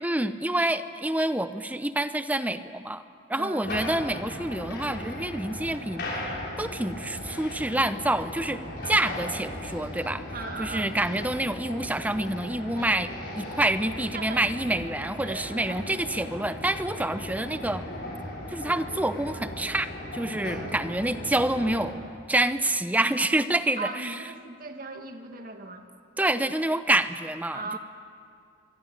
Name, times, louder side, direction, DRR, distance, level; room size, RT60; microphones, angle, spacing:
voice 1, 0.0-3.0 3.3-6.0 6.6-8.6 8.8-10.2 10.6-13.1 13.4-17.8 18.5-22.0 22.3-24.1 26.2-27.8, right 1 dB, 10° right, 11 dB, 0.7 m, -27 dB
voice 2, 3.3-3.7 10.3-10.9 12.8-12.9 14.1-14.5 15.2-15.9 23.8-25.9 27.5-27.8, right 3 dB, 45° right, 5 dB, 2.1 m, -38 dB
sound 1, 3.6-21.9, left 1 dB, 55° left, 6.7 m, -37 dB
25.5 x 22.5 x 8.9 m, 2.3 s
head